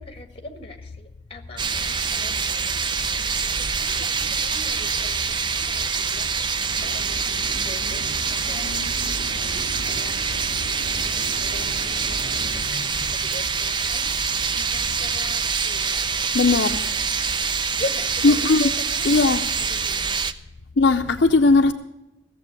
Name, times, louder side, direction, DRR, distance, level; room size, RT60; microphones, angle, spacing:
voice 1, 0.0-7.2 7.7-8.8 9.3-10.1 11.1-11.8 12.5-16.2 16.5-17.1 17.8-20.2, left 2 dB, 30° left, 1.5 m, -41 dB
sound 1, 1.6-20.3, right 5 dB, 25° right, 0.5 m, -25 dB
sound 2, 6.6-12.5, left 1 dB, 50° right, 3.1 m, -36 dB
voice 2, 16.3-16.8 18.2-18.6 19.1-19.4 20.8-21.7, left 3 dB, 70° left, 0.6 m, -18 dB
16.0 x 7.3 x 8.2 m
head